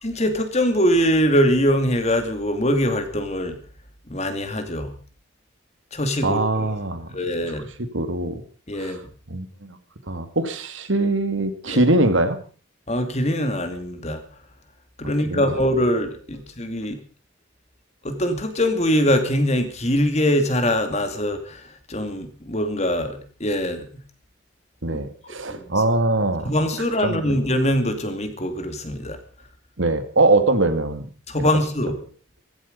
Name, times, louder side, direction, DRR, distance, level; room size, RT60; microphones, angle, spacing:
voice 1, 0.0-3.6 4.1-4.9 5.9-6.7 7.1-7.7 8.7-9.0 11.7-11.9 12.9-14.2 15.0-17.0 18.0-23.9 24.8-25.0 25.5-25.6 26.4-29.2 31.3-32.0, equal, 35° left, 8 dB, 2.5 m, -23 dB
voice 2, 6.2-7.1 7.5-7.6 7.9-8.4 8.8-9.0 9.3-9.8 10.1-12.4 15.3-15.6 24.8-26.5 27.0-27.2 29.8-31.1 31.4-31.5, right 2 dB, 75° right, 9 dB, 2.1 m, -22 dB
16.5 x 15.5 x 5.3 m, 0.39 s
head